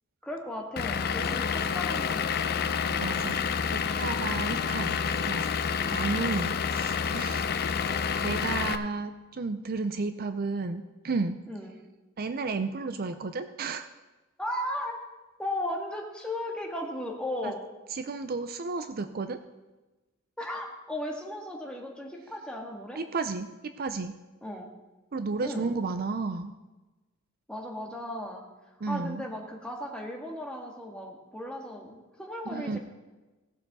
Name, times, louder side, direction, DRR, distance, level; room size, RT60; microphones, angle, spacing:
voice 1, 0.2-3.2 4.4-4.8 7.3-7.5 11.5-11.8 14.4-15.0 15.4-17.6 20.4-23.0 24.4-24.7 25.4-25.7 27.5-28.4 28.9-32.8, left 1 dB, 5° left, 0 dB, 1.6 m, -36 dB
Vehicle / Engine, 0.8-8.8, left 6 dB, 50° left, 0.5 m, -29 dB
voice 2, 3.0-3.4 3.7-5.0 5.3-5.6 5.9-7.5 7.7-11.4 12.2-13.9 17.4-17.5 17.9-19.4 23.0-23.5 23.8-24.1 25.1-26.5 28.8-29.3 32.5-32.8, right 4 dB, 50° right, 9 dB, 0.5 m, -32 dB
17.0 x 6.9 x 4.1 m, 1.1 s
head